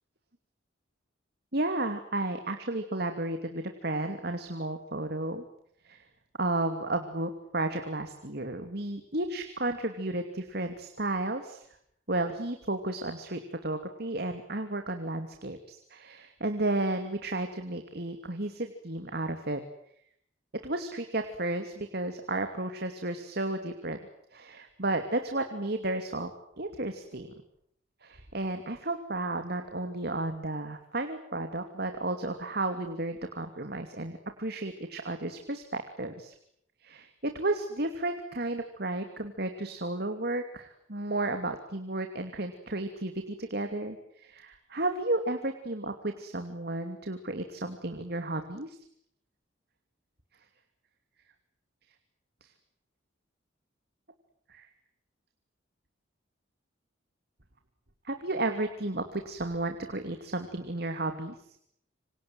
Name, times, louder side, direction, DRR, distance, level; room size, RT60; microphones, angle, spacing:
voice 1, 1.5-5.4 5.8-6.0 6.4-11.6 12.1-19.6 20.6-24.0 24.3-26.3 26.6-27.3 28.0-36.3 36.8-48.8 52.4-52.5 54.5-54.7 58.0-61.4, right 2 dB, 50° right, 7 dB, 2.7 m, -33 dB
28.0 x 26.0 x 7.8 m, 0.71 s
head